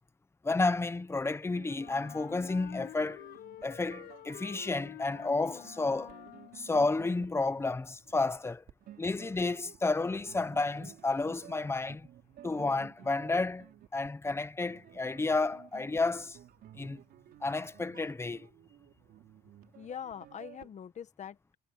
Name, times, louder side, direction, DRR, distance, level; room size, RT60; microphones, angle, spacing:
voice 1, 0.4-3.3 3.6-6.1 6.5-8.6 9.0-12.1 12.4-13.7 13.9-16.4 16.7-17.0 17.4-18.5, left 3 dB, 15° left, 1.2 m, -31 dB
sound 1, 1.5-20.7, right 12 dB, 65° right, 4.6 m, -55 dB
Wind instrument woodwind instrument, 1.7-6.8, left 14 dB, 75° left, 1.0 m, -49 dB
voice 2, 19.8-21.5, left 8 dB, 45° left, 1.6 m, -43 dB
cardioid pair, 110°, 17 cm